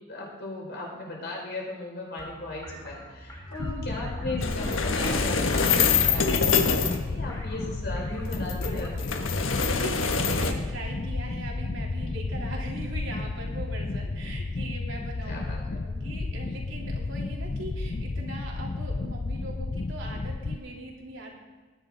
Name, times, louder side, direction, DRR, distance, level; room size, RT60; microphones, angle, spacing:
voice 1, 0.1-9.2 15.3-15.8, left 2 dB, 55° left, -2 dB, 5.5 m, -37 dB
sound 1, 2.2-9.3, equal, 15° left, 2.8 m, -44 dB
sound 2, 3.6-20.6, left 3 dB, 40° left, 0.4 m, -32 dB
sound 3, 4.4-7.0 8.2-10.5, left 5 dB, 80° left, 1.4 m, -25 dB
voice 2, 7.6-8.0 9.7-21.3, right 1 dB, 75° right, -2 dB, 3.4 m, -41 dB
20.0 x 11.0 x 4.0 m, 1.4 s
head